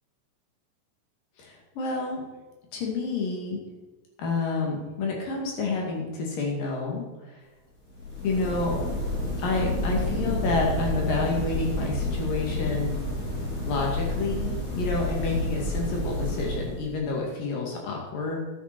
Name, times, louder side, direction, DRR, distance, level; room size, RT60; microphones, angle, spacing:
voice 1, 1.4-2.2 2.7-3.6 4.2-7.1 8.2-8.8 9.4-13.0 13.7-18.4, left 3 dB, 65° left, -1 dB, 3.9 m, -29 dB
sound 1, 7.9-17.0, left 1 dB, 50° left, 4.8 m, -30 dB
12.0 x 7.8 x 6.1 m, 1.2 s
omnidirectional pair, 4.3 m